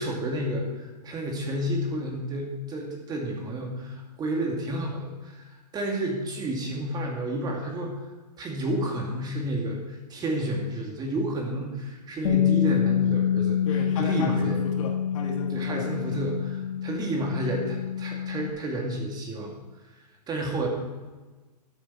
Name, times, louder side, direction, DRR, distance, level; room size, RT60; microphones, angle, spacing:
voice 1, 0.0-7.9 8.4-13.6 14.0-14.7 15.5-19.6 20.3-20.7, right 1 dB, 20° right, 1 dB, 2.2 m, -31 dB
Bass guitar, 12.2-18.5, left 9 dB, 65° left, 1.8 m, -26 dB
voice 2, 13.6-16.2, left 3 dB, 50° left, 1 dB, 2.4 m, -34 dB
12.5 x 8.3 x 5.7 m, 1.3 s
hypercardioid pair, 130°, 21 cm